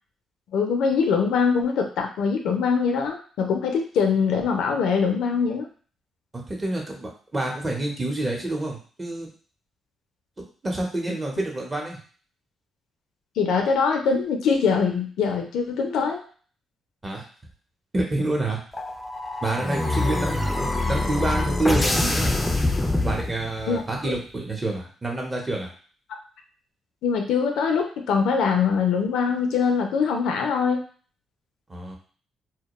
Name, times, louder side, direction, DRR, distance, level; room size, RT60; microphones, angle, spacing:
voice 1, 0.5-5.7 13.4-16.2 23.7-23.8 27.0-30.8, left 5 dB, 85° left, 3 dB, 0.4 m, -23 dB
voice 2, 6.3-9.3 10.6-12.0 17.0-17.2 17.9-18.6 19.4-22.4 23.0-25.7 31.7-32.0, right 2 dB, 25° right, 0 dB, 0.8 m, -28 dB
sound 1, 18.7-23.7, left 2 dB, 15° left, 0.4 m, -24 dB
2.2 x 2.1 x 2.9 m, 0.42 s
cardioid pair, 80°, 0 cm